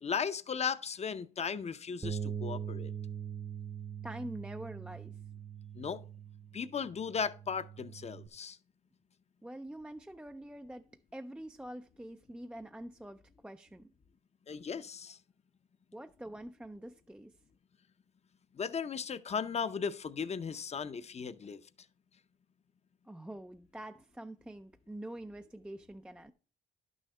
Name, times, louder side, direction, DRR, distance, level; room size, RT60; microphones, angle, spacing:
voice 1, 0.0-2.9 5.7-6.0 6.5-8.6 14.5-15.2 18.5-21.6, left 6 dB, 35° left, 0.6 m, -36 dB
Bass guitar, 2.0-8.3, right 8 dB, 25° right, 0.8 m, -42 dB
voice 2, 4.0-5.2 9.4-13.9 15.9-17.3 23.1-26.3, right 1 dB, 5° right, 0.4 m, -46 dB
11.0 x 6.3 x 3.3 m
cardioid pair, 90°, 20 cm